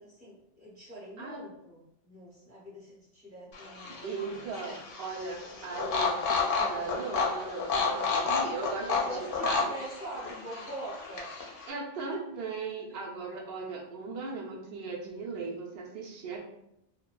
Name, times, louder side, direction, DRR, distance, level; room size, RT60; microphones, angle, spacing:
voice 1, 0.0-4.8 8.9-11.3 12.1-12.2, right 1 dB, 5° left, -9 dB, 1.0 m, -43 dB
sound 1, 3.5-11.7, left 4 dB, 60° left, 0.7 m, -31 dB
voice 2, 3.9-9.7 11.7-16.4, right 4 dB, 65° right, 0 dB, 0.8 m, -38 dB
2.7 x 2.1 x 2.2 m, 0.81 s
omnidirectional pair, 1.2 m